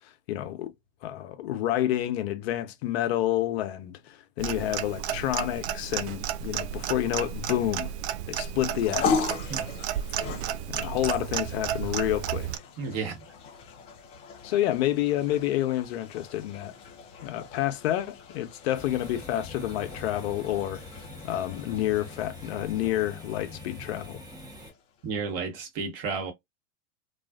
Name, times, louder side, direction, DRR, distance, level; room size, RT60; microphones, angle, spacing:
voice 1, 0.3-0.7 1.0-7.9 8.3-9.2 10.7-12.5 14.4-16.7 17.2-20.8 21.2-24.2, left 13 dB, 55° left, 0.7 m, -29 dB
Clock, 4.4-12.6, right 10 dB, 60° right, 0.5 m, -32 dB
sound 1, 8.6-25.1, left 5 dB, 15° left, 0.3 m, -38 dB
voice 2, 12.8-13.1 25.0-26.3, right 5 dB, 40° right, 1.1 m, -32 dB
sound 2, 18.7-24.7, left 2 dB, 10° right, 0.7 m, -44 dB
2.4 x 2.4 x 2.2 m
hypercardioid pair, 105°, 38 cm